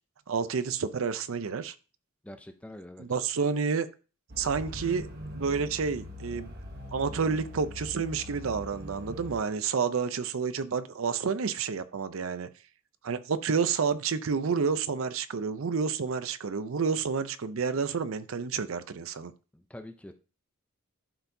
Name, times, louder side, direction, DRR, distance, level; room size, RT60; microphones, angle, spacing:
voice 1, 0.3-1.8 3.0-3.9 4.4-5.1 5.3-6.5 6.9-12.5 13.0-19.3, right 5 dB, 75° right, 0.5 m, -29 dB
voice 2, 2.2-3.0 19.5-20.2, left 1 dB, 5° left, 0.5 m, -45 dB
sound 1, 4.3-9.4, left 1 dB, 50° right, 1.0 m, -42 dB
11.5 x 4.5 x 2.7 m
head